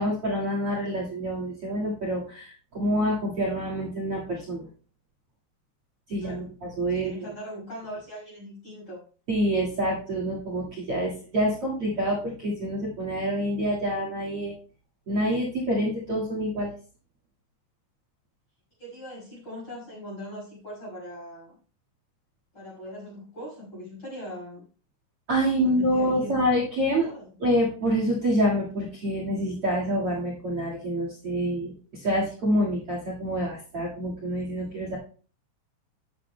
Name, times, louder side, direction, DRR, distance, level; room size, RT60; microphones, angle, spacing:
voice 1, 0.0-4.7 6.1-7.1 9.3-14.5 15.1-16.7 25.3-27.1 27.4-35.0, equal, 65° right, -1 dB, 1.4 m, -27 dB
voice 2, 6.2-6.5 6.9-9.0 18.8-21.6 22.5-24.7 25.5-26.4 27.0-27.3, equal, 25° left, -5 dB, 5.6 m, -40 dB
12.5 x 9.9 x 2.2 m, 0.40 s
omnidirectional pair, 5.8 m